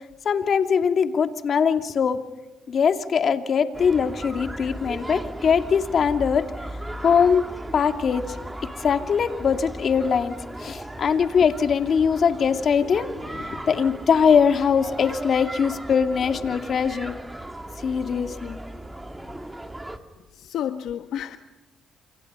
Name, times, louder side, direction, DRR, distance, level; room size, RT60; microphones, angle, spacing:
voice 1, 0.2-2.2 2.7-6.4 7.0-7.5 7.7-8.2 8.8-17.2 17.8-18.6, left 6 dB, 55° left, 7 dB, 2.5 m, -22 dB
sound 1, 3.7-20.0, right 1 dB, 10° right, 2.5 m, -37 dB
voice 2, 20.3-21.4, left 10 dB, 80° left, 8 dB, 1.2 m, -30 dB
29.0 x 27.0 x 5.6 m, 1.0 s
cardioid pair, 90°, 0 cm